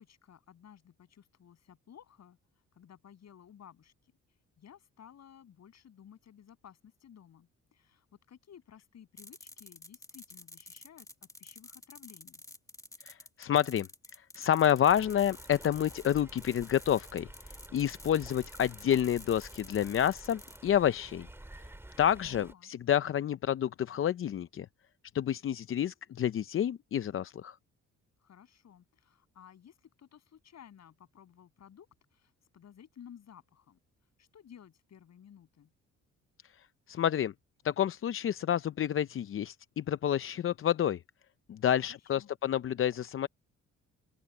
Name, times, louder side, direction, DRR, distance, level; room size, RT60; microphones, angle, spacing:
voice 1, 0.0-2.4 2.7-3.9 4.6-12.4 22.3-22.7 28.2-33.8 34.2-35.7 41.8-42.3, left 9 dB, 60° left, 7.4 m, -55 dB
sound 1, 9.2-20.6, left 1 dB, 10° left, 2.1 m, -51 dB
voice 2, 13.0-17.3 17.7-21.3 22.0-24.7 25.1-27.6 36.4-37.3 37.6-41.0 41.5-43.3, left 10 dB, 45° left, 0.6 m, -29 dB
Stream, 14.8-22.5, right 1 dB, 10° right, 2.1 m, -51 dB
open air
cardioid pair, 90°, 30 cm